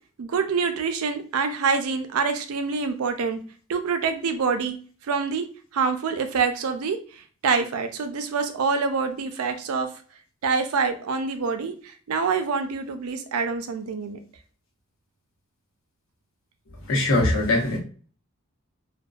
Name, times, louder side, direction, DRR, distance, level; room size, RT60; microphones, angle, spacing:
voice 1, 0.2-3.4 3.7-4.8 5.1-5.5 5.7-9.9 10.4-14.2, right 5 dB, 85° right, 7 dB, 0.4 m, -26 dB
voice 2, 16.9-17.8, left 2 dB, 65° left, -1 dB, 0.9 m, -21 dB
2.5 x 2.2 x 2.3 m, 0.40 s
head